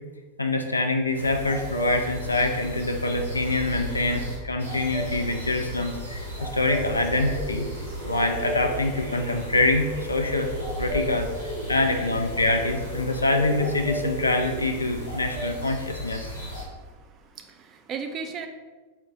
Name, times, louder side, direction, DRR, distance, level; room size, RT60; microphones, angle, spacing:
voice 1, 0.4-7.7 8.0-10.5 10.8-16.3, left 2 dB, 80° left, 4 dB, 0.4 m, -25 dB
sound 1, 1.1-16.6, equal, 85° right, 1.4 m, -33 dB
voice 2, 16.6-18.5, right 5 dB, 30° right, 6 dB, 0.4 m, -37 dB
4.5 x 2.2 x 3.7 m, 1.3 s
figure-of-eight pair, 90°, 0 cm